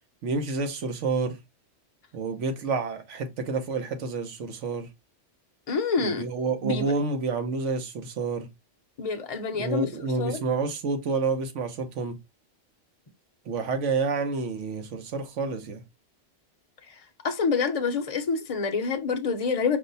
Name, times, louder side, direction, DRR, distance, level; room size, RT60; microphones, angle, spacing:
voice 1, 0.2-1.4 2.1-4.9 6.0-8.5 9.6-12.2 13.5-15.8, right 4 dB, 80° right, 1.2 m, -29 dB
voice 2, 5.7-6.2 6.6-6.9 9.0-9.9 10.2-10.4 17.2-19.8, left 5 dB, 40° left, 0.6 m, -27 dB
5.2 x 2.1 x 3.9 m
omnidirectional pair, 1.2 m